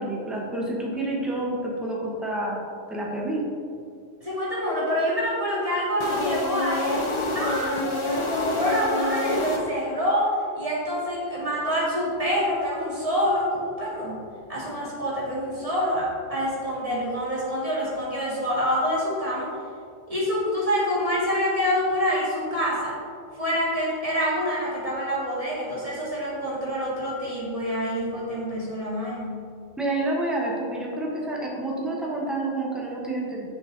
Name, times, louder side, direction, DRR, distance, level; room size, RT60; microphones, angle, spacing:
voice 1, 0.0-2.6 2.9-3.4 29.8-33.5, right 2 dB, ahead, -3 dB, 1.2 m, -28 dB
voice 2, 4.2-7.0 7.3-19.5 20.1-23.0 23.3-29.4, equal, 30° right, -7 dB, 2.1 m, -26 dB
sound 1, 6.0-10.1, left 1 dB, 30° left, 0.7 m, -28 dB
6.9 x 6.5 x 4.0 m, 2.4 s
omnidirectional pair, 1.3 m